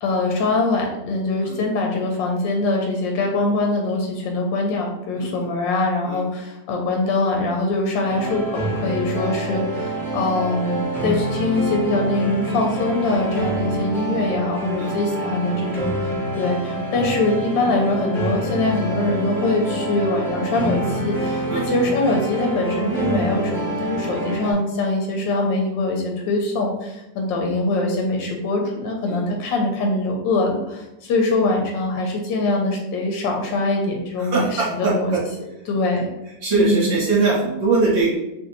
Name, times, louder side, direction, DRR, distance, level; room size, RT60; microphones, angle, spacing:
voice 1, 0.0-35.1 35.7-36.1 36.6-36.9, left 2 dB, 90° left, 1 dB, 1.3 m, -23 dB
voice 2, 5.1-5.5 6.0-6.2 14.8-15.0 21.5-21.7 29.1-29.2 34.2-35.2 36.4-38.1, right 3 dB, 50° right, -5 dB, 1.3 m, -21 dB
sound 1, 8.1-24.5, right 1 dB, ahead, 0.7 m, -26 dB
3.1 x 2.5 x 3.9 m, 0.92 s
omnidirectional pair, 1.9 m